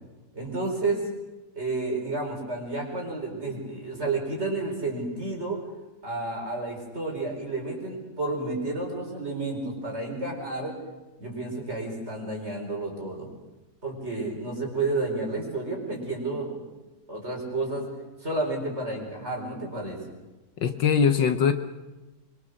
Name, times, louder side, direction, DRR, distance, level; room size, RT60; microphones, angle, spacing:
voice 1, 0.3-1.0 1.5-5.6 6.0-10.8 11.2-13.3 13.8-16.6 17.1-17.8 18.2-20.0, right 2 dB, 35° right, 0 dB, 5.0 m, -31 dB
voice 2, 20.6-21.5, left 7 dB, 70° left, 8 dB, 1.7 m, -21 dB
24.0 x 23.5 x 6.5 m, 1.1 s
omnidirectional pair, 2.1 m